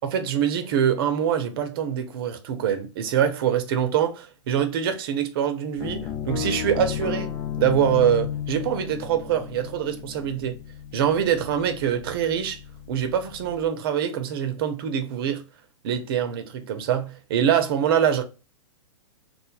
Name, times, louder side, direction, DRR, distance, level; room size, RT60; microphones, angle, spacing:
voice 1, 0.0-10.6 10.9-12.6 12.9-15.4 15.8-18.2, right 9 dB, 45° right, 0.5 m, -24 dB
sound 1, 5.8-13.7, left 9 dB, 15° left, 0.4 m, -34 dB
3.1 x 2.1 x 2.2 m
figure-of-eight pair, 110°, 16 cm